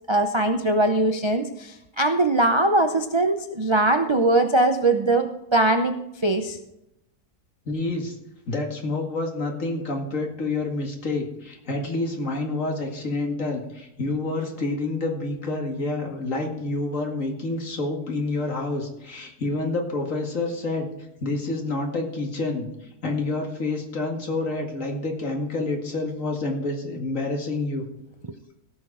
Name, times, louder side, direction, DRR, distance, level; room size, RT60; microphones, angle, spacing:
voice 1, 0.1-6.0 6.2-6.6, right 2 dB, 35° right, 5 dB, 0.5 m, -21 dB
voice 2, 7.7-8.2 8.5-20.9 21.2-27.8, left 2 dB, 55° left, 2 dB, 2.4 m, -28 dB
17.0 x 6.5 x 4.9 m, 0.86 s
omnidirectional pair, 1.6 m